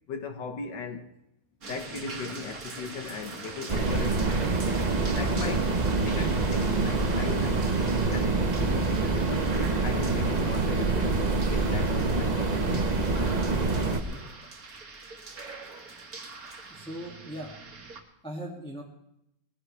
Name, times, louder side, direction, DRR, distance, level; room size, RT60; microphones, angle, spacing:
voice 1, 0.1-1.1 1.6-4.3 5.0-5.7 6.1-11.1 11.5-13.3, left 5 dB, 80° left, 6 dB, 1.9 m, -38 dB
sound 1, 1.6-18.0, right 3 dB, 55° right, 2.1 m, -42 dB
sound 2, 3.7-14.0, right 3 dB, 30° right, 0.9 m, -26 dB
voice 2, 13.9-14.2 16.1-16.3 16.7-17.5 18.2-18.8, equal, 5° left, -4 dB, 2.2 m, -40 dB
21.0 x 15.5 x 3.4 m, 0.82 s
omnidirectional pair, 1.9 m